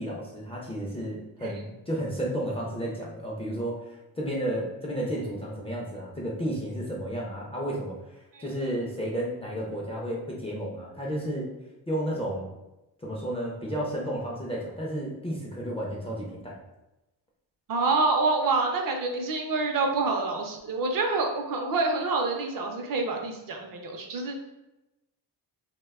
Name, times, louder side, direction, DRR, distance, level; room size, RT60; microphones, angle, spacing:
voice 1, 0.0-8.0 8.4-11.5 11.9-12.5 13.0-16.6, right 1 dB, 15° left, -4 dB, 0.3 m, -32 dB
voice 2, 17.7-24.4, right 3 dB, 55° right, 2 dB, 0.5 m, -27 dB
2.5 x 2.1 x 3.4 m, 0.97 s
wide cardioid pair, 175°, 41 cm